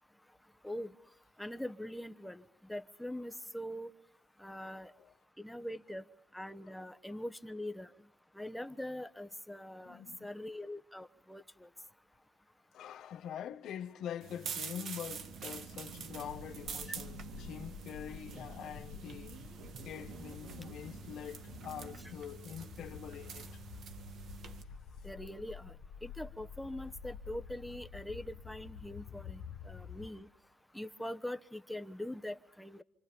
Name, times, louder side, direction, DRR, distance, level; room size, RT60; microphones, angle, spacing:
voice 1, 1.4-2.4 2.7-3.9 4.4-4.9 5.4-6.0 6.3-7.9 8.3-11.7 25.0-25.7 26.0-30.3 30.7-32.8, left 1 dB, 5° left, 1.0 m, -43 dB
voice 2, 9.8-10.3 12.7-19.4 19.8-23.6 29.8-29.9, left 9 dB, 60° left, 1.3 m, -45 dB
sound 1, 14.2-24.6, right 6 dB, 55° right, 1.7 m, -47 dB
sound 2, 15.0-22.2, right 6 dB, 75° right, 2.9 m, -52 dB
sound 3, 16.2-30.1, left 6 dB, 85° left, 1.3 m, -50 dB
28.0 x 25.5 x 5.3 m
cardioid pair, 115°, 0 cm